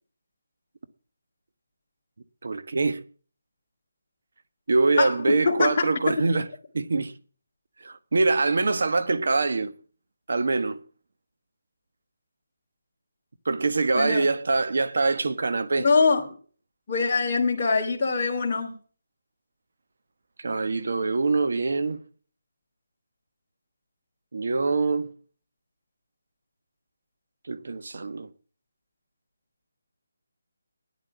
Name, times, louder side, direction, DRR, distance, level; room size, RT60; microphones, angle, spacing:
voice 1, 2.4-3.0 4.7-6.5 6.7-7.2 7.8-9.7 10.3-10.8 13.4-15.9 20.4-22.0 24.3-25.1 27.5-28.3, right 3 dB, 65° right, 1.2 m, -24 dB
voice 2, 5.0-5.8 13.9-14.2 15.8-16.3 16.9-18.8, left 4 dB, 30° left, 2.7 m, -23 dB
12.5 x 10.0 x 6.0 m
hypercardioid pair, 170°, 0 cm